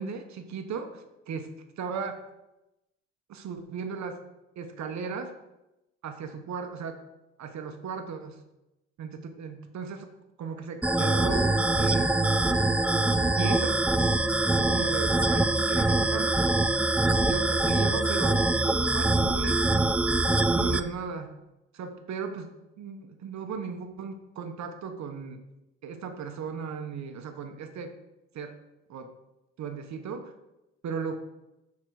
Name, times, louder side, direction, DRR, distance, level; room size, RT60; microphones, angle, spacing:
voice 1, 0.0-2.2 3.3-4.2 4.6-5.3 6.0-7.0 7.4-8.4 9.0-10.1 10.4-12.2 13.4-14.1 14.4-16.5 17.1-18.5 18.9-19.9 20.6-21.3 21.7-25.4 25.8-28.0 28.3-28.6 28.9-29.1 29.6-30.3 30.8-31.2, right 5 dB, 65° right, 7 dB, 1.1 m, -37 dB
sound 1, 10.8-20.8, right 2 dB, 5° right, 0.4 m, -24 dB
6.9 x 4.8 x 6.3 m, 0.94 s
cardioid pair, 90°, 30 cm